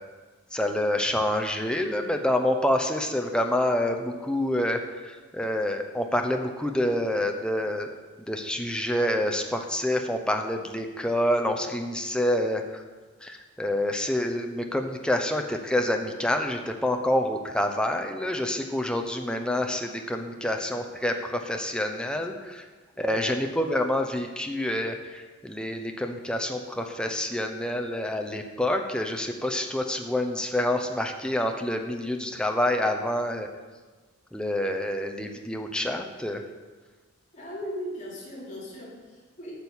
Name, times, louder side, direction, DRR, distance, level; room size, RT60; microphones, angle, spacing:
voice 1, 0.5-7.9 8.2-12.8 13.2-22.6 23.0-33.5 34.3-36.4, left 1 dB, 5° left, 4 dB, 0.8 m, -27 dB
voice 2, 37.3-39.5, equal, 40° left, -7 dB, 3.6 m, -38 dB
9.0 x 6.3 x 7.1 m, 1.4 s
head